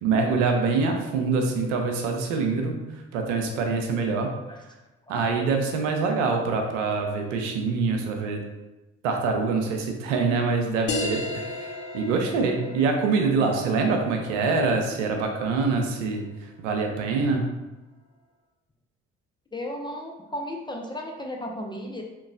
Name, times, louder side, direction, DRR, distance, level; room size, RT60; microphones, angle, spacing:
voice 1, 0.0-2.8 3.1-4.3 5.1-8.4 9.0-11.7 11.9-16.2 16.6-17.4, right 4 dB, 70° right, 3 dB, 0.6 m, -25 dB
sound 1, 10.9-16.0, left 2 dB, 75° left, 0.6 m, -35 dB
voice 2, 19.5-22.0, left 1 dB, 15° left, 1 dB, 0.3 m, -34 dB
3.8 x 2.9 x 2.3 m, 1.1 s
figure-of-eight pair, 45°, 38 cm